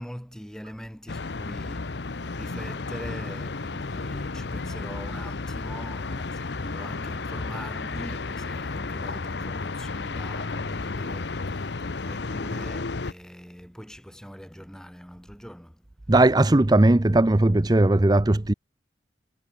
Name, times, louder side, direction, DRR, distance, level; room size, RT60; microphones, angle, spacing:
voice 1, 0.0-11.7 12.0-15.8, equal, 5° left, 6.8 m, -42 dB
sound 1, 1.1-13.1, left 3 dB, 70° left, 0.9 m, -32 dB
voice 2, 16.1-18.5, right 2 dB, 20° right, 0.6 m, -18 dB
head